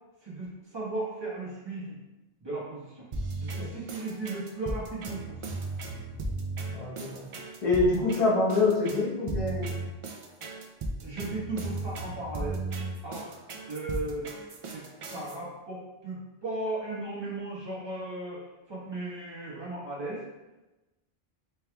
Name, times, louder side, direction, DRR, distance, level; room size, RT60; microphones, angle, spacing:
voice 1, 0.2-1.9 2.4-3.1 3.4-5.5 11.0-12.6 13.0-13.4 13.7-14.3 14.7-20.2, right 2 dB, 25° right, -7 dB, 1.2 m, -36 dB
sound 1, 3.1-15.4, right 2 dB, 50° right, 0.4 m, -36 dB
voice 2, 6.7-7.2 7.6-9.7, left 3 dB, 35° left, -5 dB, 0.9 m, -26 dB
4.5 x 3.3 x 2.2 m, 1.1 s
omnidirectional pair, 1.0 m